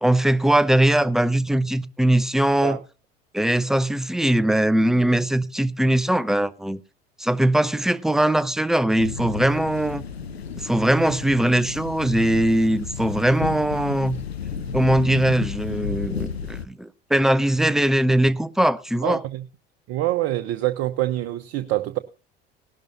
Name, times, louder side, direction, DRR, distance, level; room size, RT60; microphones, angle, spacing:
voice 1, 0.0-2.8 3.3-6.8 7.2-10.0 10.6-14.2 14.7-19.2, right 1 dB, ahead, 0.6 m, -21 dB
sound 1, 9.0-16.7, left 6 dB, 90° left, 0.9 m, -32 dB
voice 2, 19.0-19.4 19.9-22.0, right 15 dB, 50° right, 0.9 m, -25 dB
18.0 x 12.0 x 2.7 m
figure-of-eight pair, 70°, 30 cm